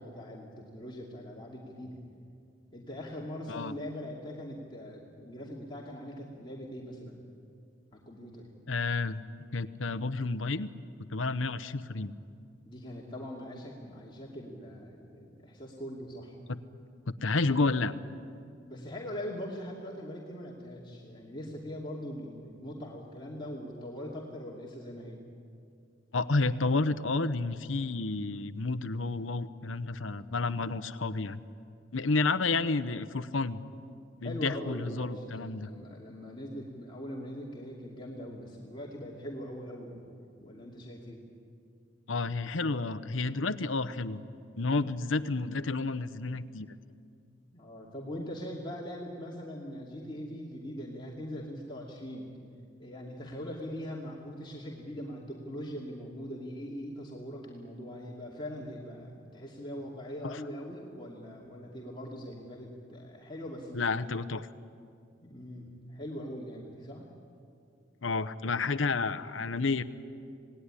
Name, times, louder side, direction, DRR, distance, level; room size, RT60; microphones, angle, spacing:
voice 1, 0.0-2.0 2.7-7.2 7.9-8.5 12.7-16.4 18.7-25.2 34.2-40.1 40.4-41.2 44.7-44.8 47.5-52.3 52.8-63.9 65.2-67.1, equal, 25° left, -3 dB, 2.7 m, -41 dB
voice 2, 8.7-9.2 9.5-10.7 11.1-12.1 16.5-16.6 17.2-17.9 26.1-31.4 31.9-33.6 34.2-35.7 42.1-44.2 44.6-46.7 60.2-60.4 63.7-64.5 68.0-69.8, left 3 dB, 85° left, 13 dB, 0.9 m, -30 dB
28.0 x 19.0 x 9.9 m, 2.5 s
head